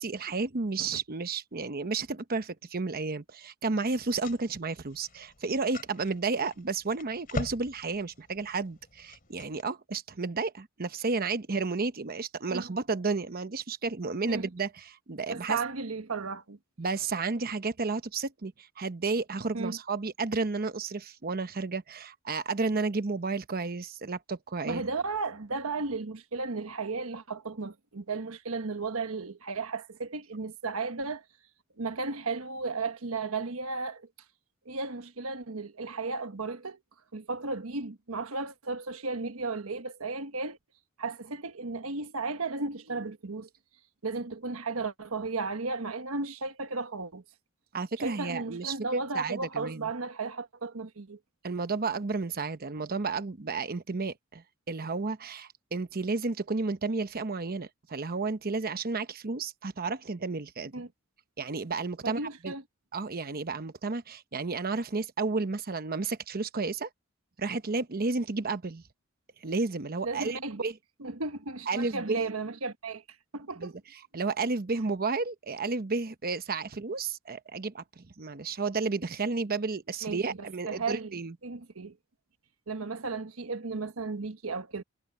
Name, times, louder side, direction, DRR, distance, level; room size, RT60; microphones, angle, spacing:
voice 1, 0.0-15.6 16.8-24.8 47.7-49.9 51.4-60.7 61.4-62.5 62.9-66.9 67.4-68.8 69.4-70.7 71.7-72.2 73.6-73.7 74.1-81.3, right 4 dB, 45° right, 0.9 m, -32 dB
sound 1, 3.7-9.6, left 2 dB, 45° left, 3.2 m, -43 dB
voice 2, 15.3-16.6 19.5-19.8 24.6-31.2 31.8-34.1 34.6-36.8 37.1-40.6 41.0-43.5 44.0-47.2 48.0-51.2 60.7-60.9 62.0-62.6 70.0-70.6 71.0-73.0 73.3-73.7 80.0-82.0 82.7-84.8, right 3 dB, 90° right, 1.3 m, -34 dB
head